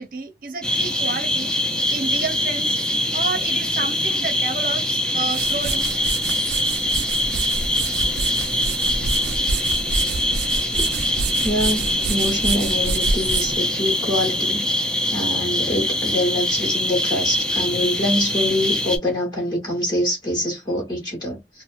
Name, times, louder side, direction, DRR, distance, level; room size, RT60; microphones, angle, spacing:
voice 1, 0.0-1.6 1.9-2.8 3.1-5.9, right 4 dB, 50° right, 0.7 m, -30 dB
sound 1, 0.6-19.0, left 1 dB, 5° left, 0.4 m, -23 dB
sound 2, 5.1-14.4, right 4 dB, 75° right, 0.3 m, -28 dB
voice 2, 11.4-14.6 15.1-21.6, left 1 dB, 25° left, 1.1 m, -25 dB
2.7 x 2.0 x 2.4 m
head